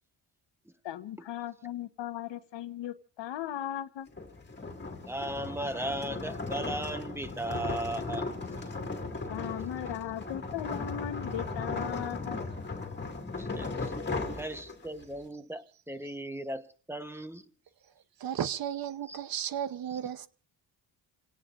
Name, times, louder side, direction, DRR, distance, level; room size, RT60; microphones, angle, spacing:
voice 1, 0.8-4.1 9.3-12.4, left 11 dB, 80° left, 1.3 m, -37 dB
sound 1, 4.1-15.0, left 3 dB, 25° left, 2.3 m, -37 dB
voice 2, 5.1-8.3 13.3-13.9 14.4-17.5 19.1-19.2, right 1 dB, 5° right, 1.0 m, -37 dB
voice 3, 18.2-20.3, right 9 dB, 55° right, 0.9 m, -34 dB
29.5 x 18.0 x 2.6 m
cardioid pair, 110°, 43 cm